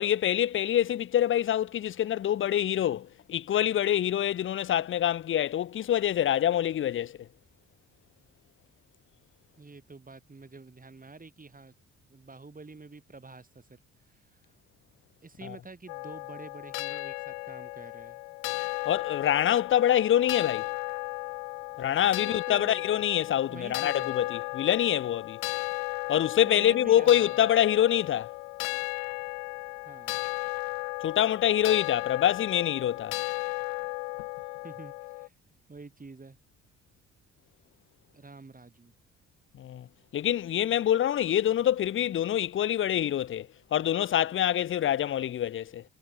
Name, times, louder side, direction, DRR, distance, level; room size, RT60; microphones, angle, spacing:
voice 1, 0.0-7.3 15.4-15.6 18.9-20.7 21.8-25.4 26.1-28.3 31.0-33.2 39.6-39.9 40.1-45.8, left 11 dB, 35° left, 0.5 m, -26 dB
voice 2, 9.6-11.7 12.1-13.8 14.1-14.4 15.2-18.2 21.7-22.9 23.5-24.1 26.4-27.5 29.8-30.2 34.6-35.3 35.7-36.4 38.1-38.9, right 3 dB, 25° right, 3.6 m, -47 dB
sound 1, 15.9-35.3, left 40 dB or more, 85° left, 1.9 m, -35 dB
hypercardioid pair, 55°, 35 cm